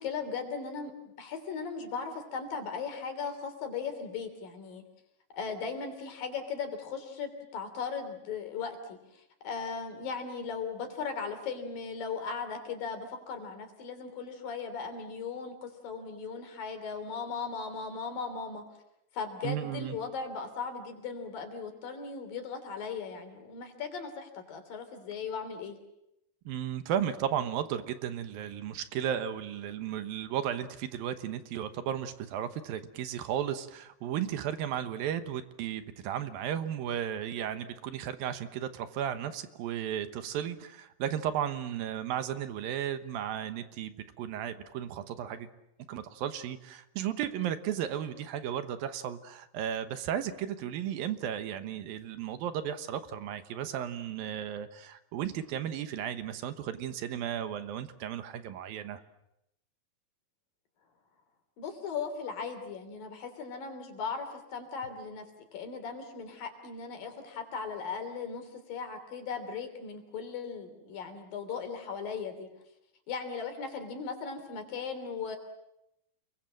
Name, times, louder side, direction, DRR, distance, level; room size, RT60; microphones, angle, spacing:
voice 1, 0.0-4.8 5.3-18.6 19.1-25.8 61.6-65.3 65.5-72.5 73.1-75.4, left 5 dB, 70° left, 7 dB, 4.9 m, -38 dB
voice 2, 19.4-20.0 26.5-45.5 45.9-59.0, right 10 dB, 75° right, 10 dB, 2.9 m, -34 dB
28.5 x 22.5 x 7.6 m, 0.84 s
omnidirectional pair, 4.2 m